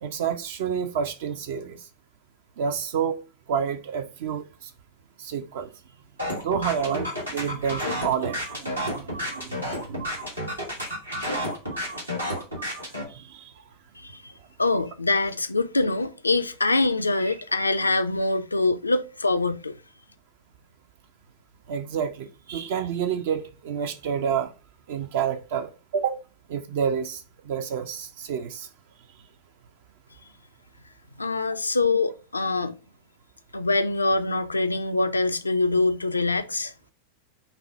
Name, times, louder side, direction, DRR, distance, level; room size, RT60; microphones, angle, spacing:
voice 1, 0.0-1.8 2.6-3.2 3.5-4.7 5.2-5.7 6.4-10.1 13.1-13.6 21.7-24.5 24.9-26.2 26.5-28.7, right 7 dB, 55° right, 0.4 m, -29 dB
sound 1, 6.2-13.0, equal, 80° right, 1.3 m, -31 dB
voice 2, 14.0-14.3 14.6-19.7 31.2-32.8 33.5-36.7, left 3 dB, 80° left, 0.4 m, -24 dB
5.6 x 2.1 x 4.5 m
figure-of-eight pair, 90°, 0 cm